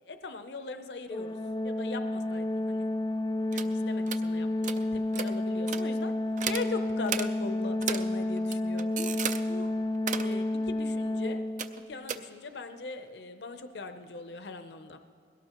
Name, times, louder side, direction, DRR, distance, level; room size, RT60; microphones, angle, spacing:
voice 1, 0.0-1.4 1.6-2.9 3.5-6.1 6.5-9.7 10.1-11.4 11.9-15.0, left 3 dB, 65° left, 8 dB, 0.6 m, -40 dB
Organ, 1.1-12.0, left 1 dB, 25° left, 0.3 m, -31 dB
sound 1, 3.5-3.7 4.1-4.2 4.6-4.8 5.1-5.3 5.7-5.8 6.4-6.7 7.1-7.3 7.8-8.0 8.4-9.4 9.9-10.3 11.6-11.8 12.1-12.2, right 8 dB, 45° right, 0.5 m, -33 dB
21.0 x 17.5 x 3.0 m, 2.1 s
head